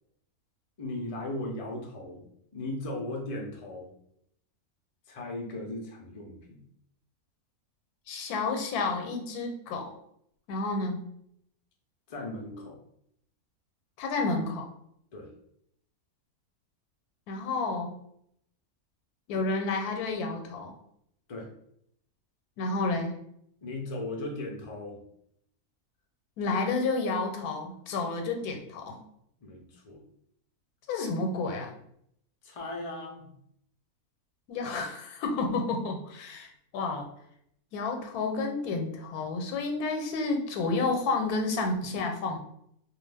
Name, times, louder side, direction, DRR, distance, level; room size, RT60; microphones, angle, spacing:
voice 1, 0.8-2.3 2.5-3.9 5.1-6.6 12.1-12.8 15.1-15.3 21.3-21.5 23.6-25.0 29.4-30.0 32.4-33.3, left 1 dB, 65° left, -1 dB, 0.3 m, -37 dB
voice 2, 8.1-9.9 10.5-11.1 14.0-14.7 17.3-17.9 19.3-20.7 22.6-23.1 26.4-29.0 30.9-31.7 34.5-37.1 37.7-42.4, left 3 dB, 90° left, 3 dB, 1.1 m, -30 dB
2.4 x 2.3 x 3.3 m, 0.71 s
omnidirectional pair, 1.5 m